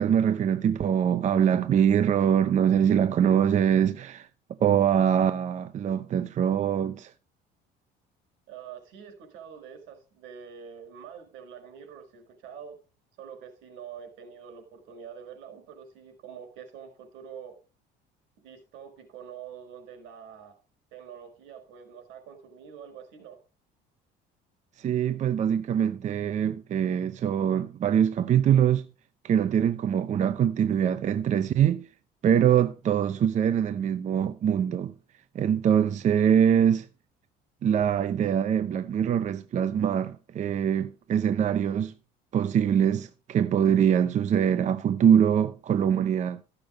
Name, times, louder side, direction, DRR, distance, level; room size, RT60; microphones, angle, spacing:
voice 1, 0.0-4.3 4.6-7.1 24.8-28.9 29.2-31.9 32.2-34.9 35.3-36.9 37.6-41.9 42.3-46.4, right 9 dB, 40° right, 0.7 m, -23 dB
voice 2, 8.5-12.7 13.2-17.6 18.4-20.6 20.9-23.4, right 7 dB, 80° right, 4.8 m, -45 dB
14.0 x 6.9 x 5.2 m
cardioid pair, 125°, 20 cm